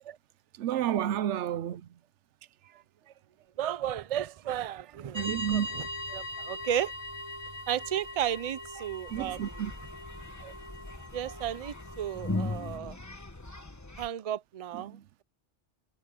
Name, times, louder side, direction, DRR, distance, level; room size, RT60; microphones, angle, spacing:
voice 1, 0.6-1.9 5.1-5.7 9.1-9.7 10.4-10.5 14.7-15.0, right 10 dB, 90° right, 0.9 m, -31 dB
voice 2, 3.6-5.8 6.1-6.9 7.7-9.6 11.1-13.0 14.0-15.2, right 10 dB, 40° right, 0.5 m, -34 dB
sound 1, 5.1-12.8, left 1 dB, 25° right, 6.3 m, -41 dB
sound 2, 9.1-14.1, left 2 dB, 15° left, 1.1 m, -39 dB
omnidirectional pair, 1.2 m